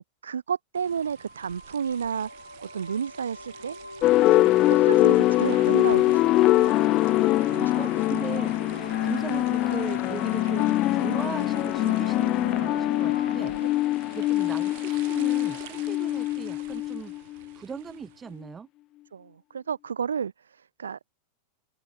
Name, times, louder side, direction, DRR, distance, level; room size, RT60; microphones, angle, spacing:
voice 1, 0.0-3.8 4.3-6.8 7.5-7.8 13.6-13.7 19.1-21.0, right 7 dB, 70° right, 1.1 m, -32 dB
sound 1, 0.7-18.4, right 20 dB, 50° right, 6.0 m, -50 dB
sound 2, 0.8-15.3, left 1 dB, 85° left, 5.7 m, -41 dB
sound 3, 4.0-17.4, left 16 dB, 35° left, 1.3 m, -23 dB
voice 2, 7.8-18.7, right 6 dB, 20° right, 4.0 m, -39 dB
open air
figure-of-eight pair, 90°, 0 cm